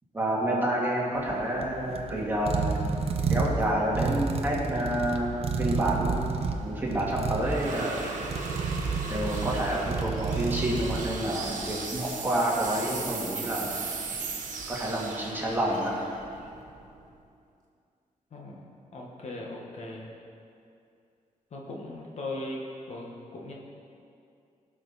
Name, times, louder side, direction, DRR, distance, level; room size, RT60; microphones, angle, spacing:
voice 1, 0.1-2.8 3.3-8.2 9.1-13.7 14.7-15.9, right 1 dB, 15° right, -5 dB, 2.1 m, -29 dB
sound 1, 1.2-11.7, right 4 dB, 45° right, 0.8 m, -31 dB
sound 2, 6.5-17.2, right 4 dB, 65° right, 1.5 m, -38 dB
voice 2, 18.3-18.7 18.9-20.1 21.5-23.5, left 2 dB, 50° left, -2 dB, 1.4 m, -38 dB
17.0 x 6.2 x 4.1 m, 2.5 s
wide cardioid pair, 145°, 14 cm